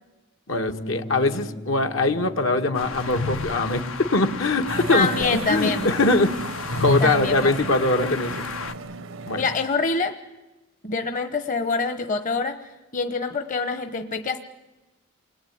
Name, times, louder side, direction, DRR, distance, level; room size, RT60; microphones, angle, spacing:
voice 1, 0.5-5.1 5.5-6.4 6.8-8.5 9.3-9.5, left 2 dB, 75° left, 5 dB, 1.7 m, -22 dB
Bass guitar, 0.7-6.9, left 1 dB, 55° left, 1.5 m, -41 dB
sound 1, 2.8-8.7, left 3 dB, 90° left, 1.5 m, -31 dB
sound 2, 4.7-9.7, right 3 dB, 80° right, 0.8 m, -35 dB
voice 2, 4.9-5.9 7.0-7.5 9.3-10.2 10.8-12.6 12.9-14.4, left 4 dB, 40° left, 8 dB, 1.1 m, -25 dB
28.5 x 21.0 x 9.5 m, 1.1 s
head